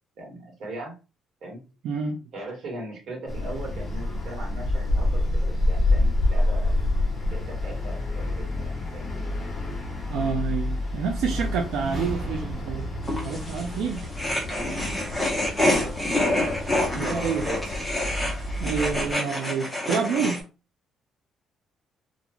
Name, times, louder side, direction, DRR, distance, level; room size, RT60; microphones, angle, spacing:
voice 1, 0.2-1.0 1.4-1.6 2.3-6.7 7.3-9.1 14.5-14.9 15.4-16.2 17.0-17.6, right 1 dB, 55° right, 1.4 m, -39 dB
voice 2, 1.8-2.2 10.1-12.9 13.2-14.1 16.9-17.4 18.6-20.5, right 5 dB, 80° right, 0.4 m, -28 dB
sound 1, 3.3-19.1, left 2 dB, 20° left, 1.0 m, -28 dB
sound 2, 11.3-15.2, equal, 15° right, 1.2 m, -37 dB
sound 3, 13.0-20.4, left 1 dB, ahead, 0.9 m, -27 dB
2.5 x 2.3 x 2.9 m
cardioid pair, 150°, 0 cm